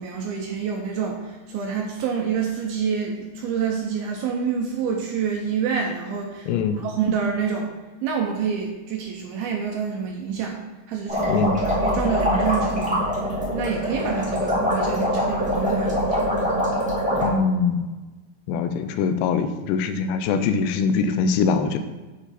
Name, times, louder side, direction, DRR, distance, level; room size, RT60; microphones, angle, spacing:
voice 1, 0.0-7.7 8.0-10.6 10.9-13.0 13.5-16.3, right 6 dB, 80° right, 1 dB, 2.3 m, -27 dB
voice 2, 6.5-6.8 11.3-11.6 17.2-17.8 18.5-21.8, left 5 dB, 85° left, 8 dB, 2.8 m, -22 dB
pumps.fast, 11.1-17.3, equal, 5° right, 0.6 m, -23 dB
8.3 x 5.0 x 4.2 m, 1.2 s
omnidirectional pair, 5.0 m